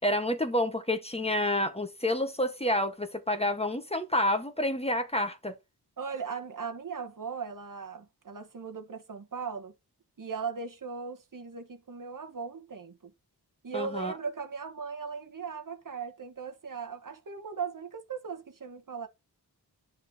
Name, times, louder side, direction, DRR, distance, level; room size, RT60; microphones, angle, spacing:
voice 1, 0.0-5.5 13.7-14.1, left 1 dB, 15° left, 1.3 m, -29 dB
voice 2, 6.0-9.7 10.2-13.1 13.6-19.1, right 6 dB, 50° right, 1.3 m, -38 dB
9.6 x 6.4 x 2.8 m
cardioid pair, 60°, 41 cm